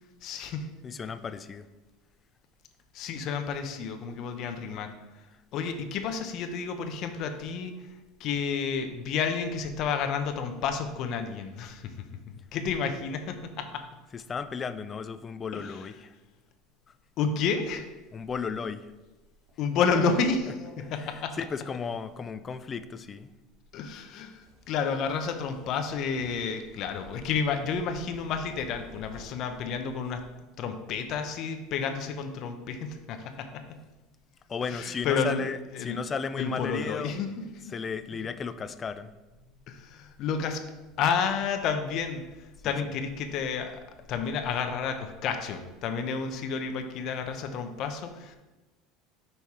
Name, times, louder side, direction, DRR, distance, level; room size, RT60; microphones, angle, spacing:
voice 1, 0.2-0.7 2.9-4.9 5.5-7.7 8.2-11.9 12.5-13.8 15.5-15.8 17.2-17.8 19.6-21.3 23.7-30.2 30.6-33.6 34.7-35.4 35.7-36.0 36.4-37.3 39.7-40.6 41.0-42.2 42.6-43.7 44.1-48.4, left 6 dB, 50° left, 6 dB, 0.7 m, -30 dB
voice 2, 0.8-1.7 14.1-16.1 18.1-18.9 20.8-23.3 34.5-37.1 37.7-39.1 42.6-42.7, left 5 dB, 25° left, 12 dB, 0.4 m, -35 dB
sound 1, 17.8-30.3, right 1 dB, 65° right, 1.8 m, -50 dB
5.5 x 4.2 x 4.8 m, 1.1 s
supercardioid pair, 125°, 0 cm